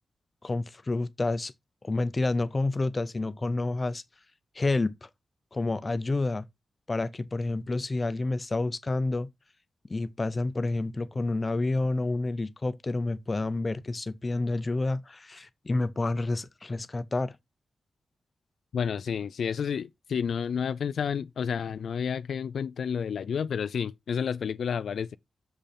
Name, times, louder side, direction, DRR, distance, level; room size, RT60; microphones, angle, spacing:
voice 1, 0.4-1.5 1.8-4.0 4.5-5.1 5.5-6.5 6.9-9.3 9.9-17.4, left 2 dB, 25° left, 0.6 m, -29 dB
voice 2, 18.7-25.2, left 7 dB, 80° left, 0.4 m, -30 dB
7.0 x 5.4 x 4.3 m
wide cardioid pair, 155°, 0 cm